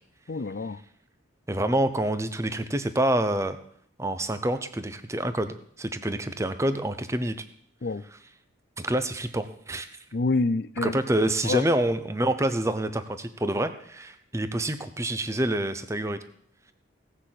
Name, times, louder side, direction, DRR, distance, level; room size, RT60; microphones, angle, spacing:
voice 1, 0.3-0.8 7.8-8.0 10.1-11.0 11.5-11.6, left 3 dB, 50° left, 16 dB, 0.5 m, -27 dB
voice 2, 1.5-3.6 4.0-7.4 8.1-8.2 8.8-9.9 10.8-16.2, right 1 dB, 15° right, 10 dB, 0.8 m, -27 dB
17.0 x 6.6 x 7.6 m, 0.66 s
head